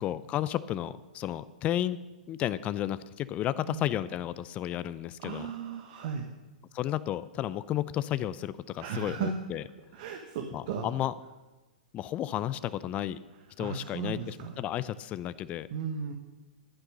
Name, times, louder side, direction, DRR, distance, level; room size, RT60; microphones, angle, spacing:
voice 1, 0.0-2.0 2.3-5.5 6.7-9.6 10.5-11.1 11.9-13.2 13.6-15.7, left 12 dB, 30° left, 16 dB, 0.5 m, -32 dB
voice 2, 5.2-6.3 8.8-9.3 9.9-10.9 13.6-14.5 15.7-16.1, right 7 dB, 50° right, 4 dB, 1.4 m, -35 dB
11.5 x 9.7 x 6.5 m, 1.1 s
figure-of-eight pair, 105°, 4 cm